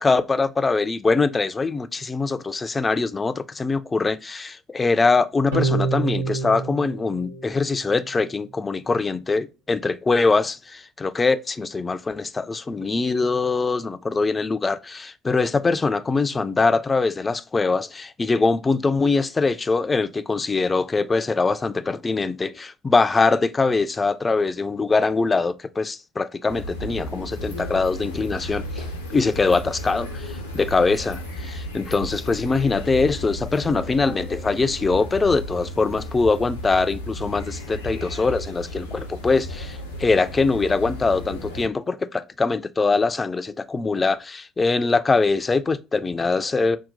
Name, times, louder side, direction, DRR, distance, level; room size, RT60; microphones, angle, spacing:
voice 1, 0.0-28.8 29.1-31.2 31.5-46.8, left 4 dB, 25° left, 0.3 m, -22 dB
sound 1, 5.5-8.1, right 4 dB, 90° right, 0.9 m, -27 dB
sound 2, 26.5-41.7, left 1 dB, 85° left, 0.5 m, -34 dB
2.8 x 2.1 x 3.8 m
figure-of-eight pair, 55°, 0 cm